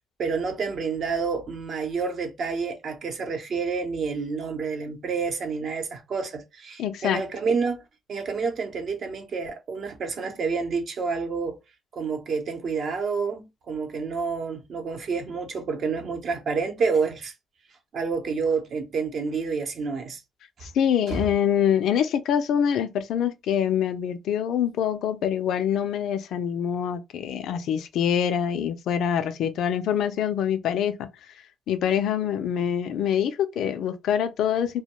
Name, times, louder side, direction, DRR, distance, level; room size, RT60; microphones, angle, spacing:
voice 1, 0.2-7.8 8.1-11.6 11.9-17.3 17.9-20.2 21.1-21.3, right 5 dB, 60° right, 0.8 m, -29 dB
voice 2, 6.8-7.2 20.6-31.1 31.7-34.8, left 9 dB, 75° left, 0.4 m, -25 dB
2.2 x 2.1 x 3.0 m
cardioid pair, 90°, 0 cm